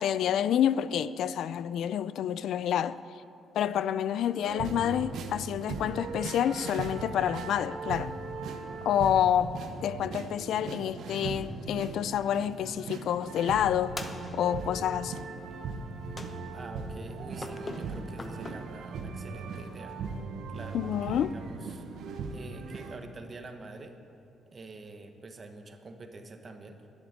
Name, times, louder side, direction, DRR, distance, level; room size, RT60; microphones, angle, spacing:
voice 1, 0.0-3.0 3.5-8.1 8.8-14.0 14.3-15.2 20.7-21.3, left 10 dB, 75° left, 0.3 m, -28 dB
sound 1, 4.4-23.0, right 4 dB, 75° right, 1.1 m, -39 dB
sound 2, 14.0-14.8 16.2-16.8 17.4-18.5, left 3 dB, 30° left, 0.9 m, -42 dB
voice 2, 16.5-20.0 20.5-21.8 22.3-24.0 24.5-26.8, right 3 dB, 40° right, 1.3 m, -46 dB
11.5 x 7.2 x 9.5 m
cardioid pair, 90°, 0 cm